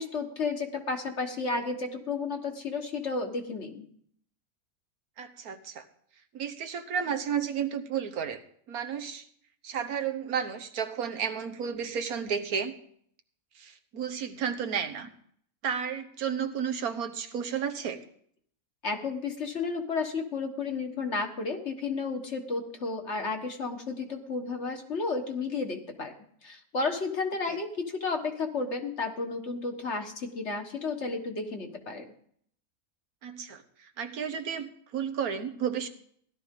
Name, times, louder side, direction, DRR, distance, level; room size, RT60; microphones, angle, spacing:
voice 1, 0.0-3.9 18.8-26.1 26.4-32.1, left 4 dB, 50° left, 4 dB, 1.7 m, -32 dB
voice 2, 5.2-5.8 6.3-8.4 8.7-9.2 9.6-12.7 13.6-15.1 15.6-18.0 27.5-27.6 33.2-35.9, right 7 dB, 80° right, 7 dB, 1.5 m, -32 dB
16.5 x 12.0 x 3.7 m, 0.63 s
omnidirectional pair, 1.5 m